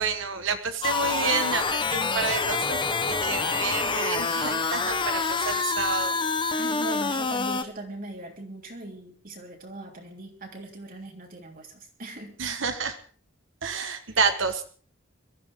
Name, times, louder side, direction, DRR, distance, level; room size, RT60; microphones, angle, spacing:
voice 1, 0.0-6.2 12.4-13.0 13.6-14.6, right 5 dB, 80° right, 8 dB, 1.4 m, -29 dB
sound 1, 0.8-7.6, left 4 dB, 25° left, 0.9 m, -27 dB
voice 2, 6.6-12.3 13.8-14.2, right 2 dB, 45° right, 1 dB, 3.4 m, -40 dB
22.5 x 14.0 x 3.7 m, 0.42 s
head